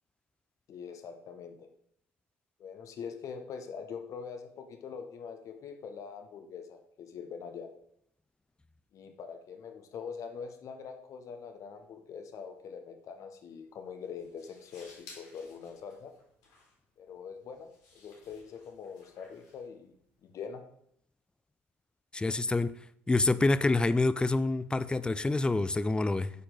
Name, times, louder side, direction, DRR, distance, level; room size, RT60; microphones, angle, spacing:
voice 1, 0.7-1.7 2.6-7.7 8.9-16.1 17.0-17.7 17.9-19.9 20.2-20.6, left 6 dB, 50° left, 1.0 m, -43 dB
sound 1, 13.5-20.3, left 3 dB, 70° left, 2.9 m, -58 dB
voice 2, 22.1-22.8 23.1-26.3, left 2 dB, 15° left, 0.4 m, -27 dB
8.6 x 4.5 x 3.9 m
hypercardioid pair, 55°, 7 cm